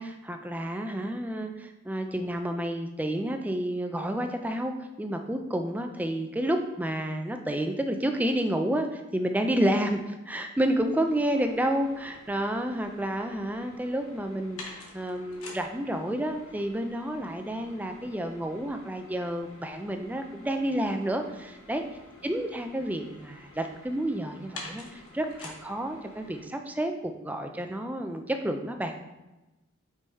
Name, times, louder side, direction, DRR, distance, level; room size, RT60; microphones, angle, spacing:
voice 1, 0.0-21.8 22.2-28.9, right 1 dB, 5° right, 5 dB, 0.3 m, -30 dB
sound 1, 11.0-26.4, left 2 dB, 80° left, 1.2 m, -49 dB
5.4 x 4.8 x 4.2 m, 1.0 s
head